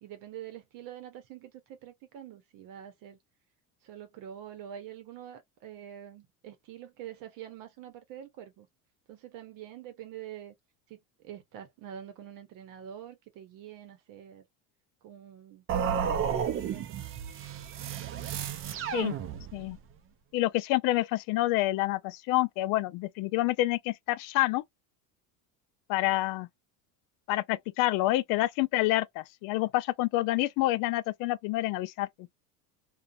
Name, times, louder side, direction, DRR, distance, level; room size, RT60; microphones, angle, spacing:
voice 1, 0.0-3.2 3.8-8.7 9.1-10.5 10.9-14.4 15.0-17.0, right 10 dB, 55° right, 0.9 m, -46 dB
sound 1, 15.7-19.8, right 8 dB, 35° right, 0.5 m, -32 dB
voice 2, 20.3-24.6 25.9-26.5 27.3-32.3, left 17 dB, 60° left, 0.5 m, -28 dB
2.5 x 2.3 x 2.6 m
cardioid pair, 130°, 39 cm